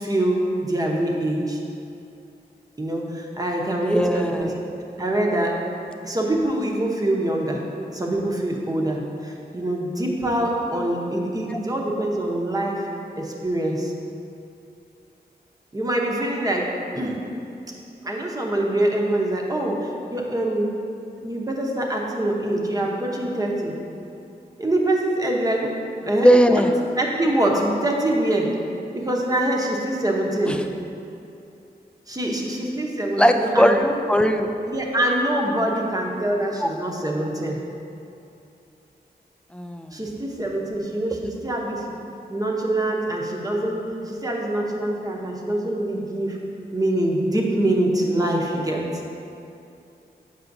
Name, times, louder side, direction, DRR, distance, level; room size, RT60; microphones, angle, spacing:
voice 1, 0.0-1.6 2.8-4.5 5.0-5.5 6.0-7.6 7.9-12.9 13.2-13.9 15.7-16.7 16.9-17.2 18.0-20.7 21.2-23.7 24.6-25.7 26.0-26.6 27.0-28.5 28.9-30.6 32.1-33.8 34.7-37.6 39.9-41.9 42.3-46.4 46.7-48.8, right 1 dB, 20° right, -1 dB, 0.8 m, -24 dB
voice 2, 3.9-4.5 11.5-11.6 26.2-26.7 30.4-30.6 33.2-34.5 36.6-36.7 39.5-39.9, equal, 5° left, 6 dB, 0.3 m, -18 dB
6.9 x 5.6 x 2.6 m, 2.7 s
wide cardioid pair, 70°, 17 cm